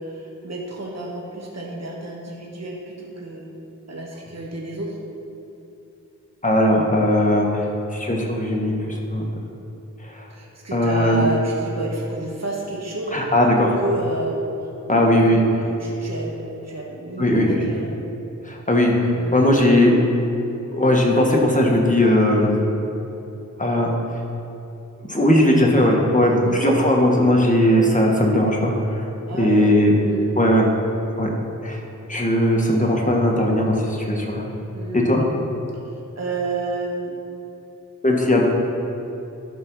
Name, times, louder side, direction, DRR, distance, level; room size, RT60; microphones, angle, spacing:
voice 1, 0.0-3.6 3.9-5.0 10.3-13.3 13.6-14.4 14.8-18.0 19.1-19.4 26.4-26.6 29.3-29.6 30.0-30.3 34.7-35.3 35.8-37.1, right 2 dB, 50° right, -2 dB, 1.3 m, -30 dB
voice 2, 6.4-7.7 7.9-9.2 10.0-10.3 10.7-11.2 13.1-13.7 14.9-15.4 17.2-17.6 18.4-19.9 20.7-22.5 23.6-23.9 25.1-29.0 29.4-29.9 30.4-30.7 31.2-31.3 31.6-31.8 32.1-34.4 34.9-35.3 38.0-38.5, left 1 dB, 25° left, -1 dB, 1.6 m, -18 dB
12.5 x 4.4 x 6.2 m, 2.9 s
wide cardioid pair, 55°, 32 cm